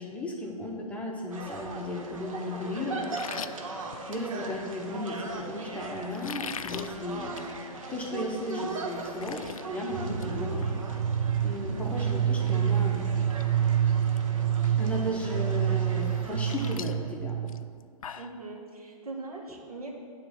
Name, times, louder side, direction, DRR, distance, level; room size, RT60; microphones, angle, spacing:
voice 1, 0.0-3.1 3.8-7.3 7.9-9.4 9.7-10.7 11.4-13.0 14.8-17.4, left 1 dB, 5° left, -3 dB, 1.0 m, -35 dB
sound 1, 1.3-16.8, right 3 dB, 60° right, 1.1 m, -40 dB
sound 2, 3.0-4.6 6.1-6.9 7.3-7.5 7.9-8.0 8.5-8.6 8.8-9.6 10.0-10.3 10.6-10.8 12.6-12.7 13.2-13.4 13.7-14.2 14.6-14.7 16.1-18.4, left 7 dB, 70° left, 0.4 m, -40 dB
sound 3, 9.9-17.7, right 9 dB, 45° right, 0.4 m, -28 dB
voice 2, 18.2-19.9, right 3 dB, 75° right, 0 dB, 1.5 m, -41 dB
9.7 x 3.7 x 7.2 m, 2.1 s
figure-of-eight pair, 120°, 19 cm